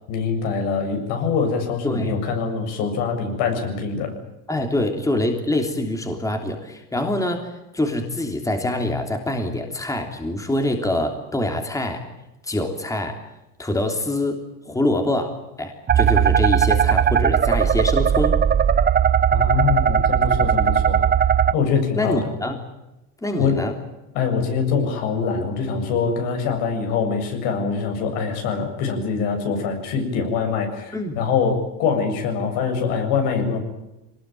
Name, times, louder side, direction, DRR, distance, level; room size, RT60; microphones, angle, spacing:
voice 1, 0.1-4.1 19.3-21.0 21.5-22.3 23.4-23.6 24.1-33.6, left 5 dB, 65° left, 5 dB, 7.6 m, -24 dB
voice 2, 4.5-12.0 12.4-13.2 13.6-14.4 14.6-18.4 22.0-22.6 23.2-23.7 30.9-31.2, left 1 dB, 5° left, 4 dB, 3.2 m, -25 dB
sound 1, 15.9-21.5, right 8 dB, 20° right, 0.8 m, -18 dB
24.0 x 20.0 x 9.2 m, 0.96 s
supercardioid pair, 120°, 45 cm